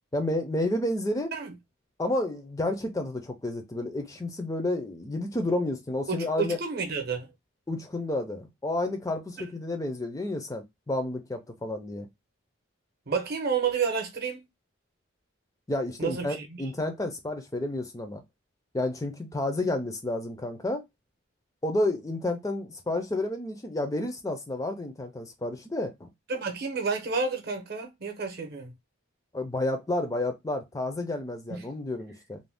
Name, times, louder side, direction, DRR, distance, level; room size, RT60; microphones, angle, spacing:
voice 1, 0.1-1.3 2.0-6.6 7.7-12.1 15.7-18.2 18.7-20.8 21.6-26.1 29.3-32.4, left 1 dB, 15° left, 0.4 m, -30 dB
voice 2, 6.1-7.3 13.1-14.4 16.0-16.6 26.3-28.7 31.5-31.7, right 5 dB, 50° right, 0.7 m, -30 dB
2.6 x 2.1 x 3.3 m
head